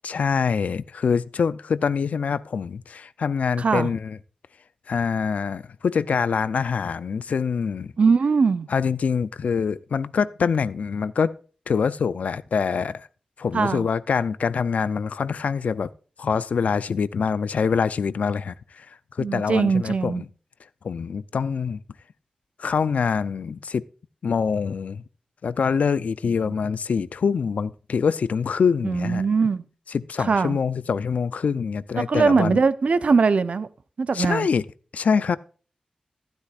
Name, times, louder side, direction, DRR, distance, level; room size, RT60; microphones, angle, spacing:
voice 1, 0.0-4.2 4.9-7.9 8.7-11.4 11.7-13.1 13.4-15.9 16.2-18.9 19.2-20.2 20.8-21.8 22.6-23.8 24.2-25.0 25.4-29.2 29.9-32.6 34.1-34.6 34.9-35.4, left 6 dB, 85° left, 0.5 m, -25 dB
voice 2, 3.6-3.9 8.0-8.7 13.5-13.9 19.2-20.2 26.3-26.5 28.8-29.7 30.2-30.6 32.0-33.7 34.0-34.5, right 5 dB, 60° right, 0.6 m, -21 dB
12.5 x 11.5 x 2.4 m
wide cardioid pair, 125°, 2 cm